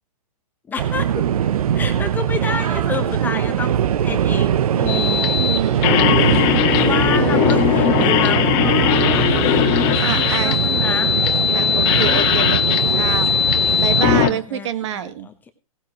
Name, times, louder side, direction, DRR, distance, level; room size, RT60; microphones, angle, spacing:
voice 1, 0.7-1.3 1.7-5.4 6.0-6.1 6.7-9.3 9.9-11.2 12.0-12.5 14.2-15.5, left 5 dB, 10° left, 8 dB, 0.9 m, -30 dB
sound 1, 0.8-14.2, right 9 dB, 65° right, 0.8 m, -21 dB
sound 2, 4.9-14.3, left 10 dB, 30° left, 1.6 m, -19 dB
voice 2, 5.4-6.8 7.1-7.7 10.0-10.6 11.5-13.3 13.8-15.3, right 9 dB, 50° right, 12 dB, 1.6 m, -27 dB
18.0 x 12.5 x 3.0 m, 0.32 s
hypercardioid pair, 155°, 20 cm